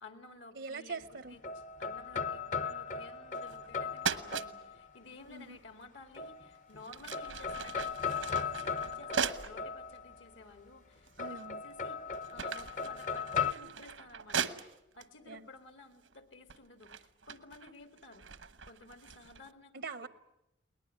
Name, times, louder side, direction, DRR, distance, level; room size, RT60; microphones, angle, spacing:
voice 1, 0.0-1.4 1.8-12.0 12.3-18.2 18.7-19.9, left 3 dB, 75° left, 8 dB, 2.2 m, -54 dB
voice 2, 0.5-1.4 5.3-5.6 11.2-11.6 15.2-15.5 19.7-20.1, right 4 dB, 70° right, 14 dB, 0.8 m, -43 dB
sound 1, 1.0-5.0 6.2-6.8 7.1-10.3 11.2-13.5, left 6 dB, 40° left, 0.8 m, -37 dB
sound 2, 3.3-3.7 4.0-4.5 6.1-6.3 6.8-9.6 10.2-10.3 11.1-11.6 11.9-15.1 15.9-16.2 16.5-19.5, right 6 dB, 85° right, 1.2 m, -39 dB
21.5 x 19.5 x 9.5 m, 0.89 s
head